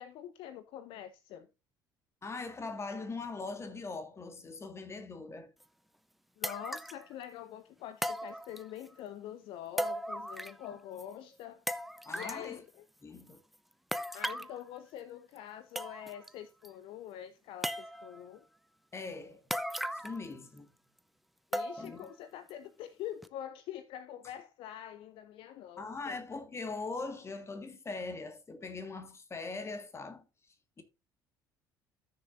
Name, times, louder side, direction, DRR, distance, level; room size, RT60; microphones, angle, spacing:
voice 1, 0.0-1.5 6.4-11.8 12.1-12.9 14.1-18.4 21.5-26.2, left 11 dB, 50° left, 0.7 m, -45 dB
voice 2, 2.2-5.5 12.1-12.6 13.0-13.4 18.9-19.5 19.9-20.7 21.8-22.1 25.8-30.3 30.8-30.9, left 3 dB, 25° left, 1.8 m, -41 dB
sound 1, 5.6-5.7 6.4-7.0 8.0-8.9 9.8-10.7 11.0-11.1 11.7-12.4 13.9-14.6 15.4-15.5 15.7-16.3 16.6-16.7 17.6-18.2 19.5-20.3 20.6-20.7 21.5-22.0 22.5-22.6 23.2-23.3, equal, ahead, 0.6 m, -37 dB
14.0 x 6.6 x 2.6 m
figure-of-eight pair, 60°, 11 cm